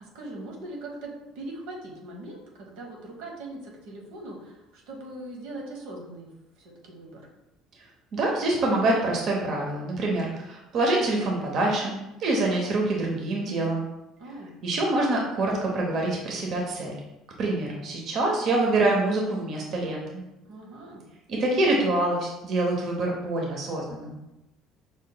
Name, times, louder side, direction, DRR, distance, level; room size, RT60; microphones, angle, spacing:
voice 1, 0.0-7.2 14.2-14.5 20.4-21.0, right 2 dB, 85° right, -1 dB, 1.0 m, -41 dB
voice 2, 8.1-11.9 12.2-13.8 14.6-16.9 17.4-20.2 21.3-24.2, right 2 dB, 55° right, -1 dB, 0.8 m, -25 dB
5.1 x 3.6 x 2.2 m, 0.95 s
supercardioid pair, 105°, 0 cm